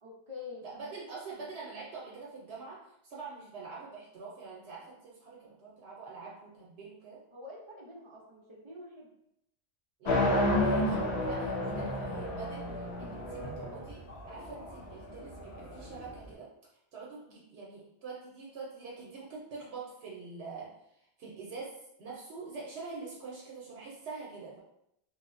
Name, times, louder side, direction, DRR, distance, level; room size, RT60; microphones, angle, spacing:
voice 1, 0.0-1.0 7.3-9.1, left 3 dB, 40° right, -3 dB, 0.5 m, -46 dB
voice 2, 0.6-7.2 10.0-16.5 16.9-24.6, right 4 dB, 80° right, -4 dB, 0.8 m, -45 dB
sound 1, 10.0-16.1, left 1 dB, 85° left, 0.9 m, -31 dB
3.0 x 2.0 x 2.4 m, 0.76 s
omnidirectional pair, 1.1 m